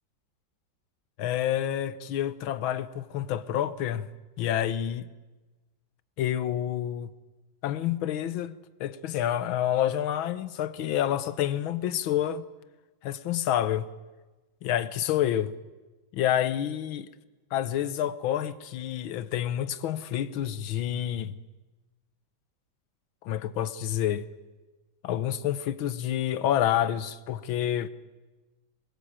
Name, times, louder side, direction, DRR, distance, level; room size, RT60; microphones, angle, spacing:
voice 1, 1.2-4.1 4.4-5.1 6.2-7.1 7.6-8.5 8.8-12.4 13.0-13.9 14.6-15.6 16.1-17.1 17.5-21.3 23.2-24.3 25.0-27.9, left 11 dB, 85° left, 1.7 m, -28 dB
22.5 x 21.0 x 8.9 m
omnidirectional pair, 2.1 m